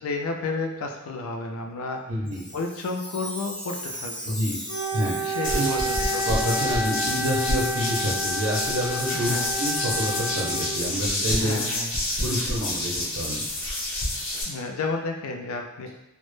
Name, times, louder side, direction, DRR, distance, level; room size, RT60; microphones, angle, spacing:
voice 1, 0.0-2.0 2.5-4.4 5.2-6.3 9.1-9.5 11.3-11.9 14.4-15.9, left 3 dB, 85° left, 3 dB, 0.4 m, -31 dB
voice 2, 2.1-2.5 4.3-4.6 4.9-5.2 5.5-5.7 6.2-11.6 12.2-13.5, equal, 80° right, -5 dB, 0.5 m, -28 dB
Chime, 2.3-6.3 7.0-7.1 7.8-8.0 8.5-8.7 9.4-9.5 10.1-10.2 11.0-11.1, equal, 5° left, 0.3 m, -38 dB
Wind instrument woodwind instrument, 4.7-11.0, equal, 45° right, 0.7 m, -30 dB
sound 1, 5.4-14.4, left 1 dB, 65° left, 0.8 m, -28 dB
2.0 x 2.0 x 3.0 m, 0.94 s
head